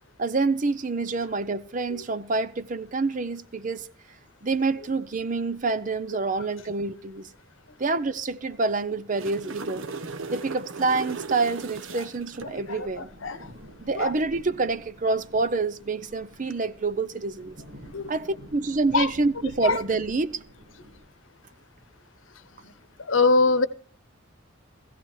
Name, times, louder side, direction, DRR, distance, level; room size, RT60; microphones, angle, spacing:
voice 1, 0.2-3.9 4.4-7.3 7.8-9.8 10.3-13.1 13.8-17.5 18.1-20.4, right 3 dB, 40° right, 0.6 m, -27 dB
sound 1, 5.2-7.3 7.6-7.7 7.9-9.7 9.9-10.0 10.3-21.1, equal, 55° right, 2.2 m, -49 dB
sound 2, 8.9-12.5 16.3-16.5, right 4 dB, 80° right, 0.8 m, -37 dB
voice 2, 12.4-13.5 13.9-14.2 17.9-18.1 18.9-19.1 19.6-19.8 22.6-22.7 23.0-23.7, left 3 dB, 80° left, 0.9 m, -24 dB
17.5 x 15.0 x 3.2 m
head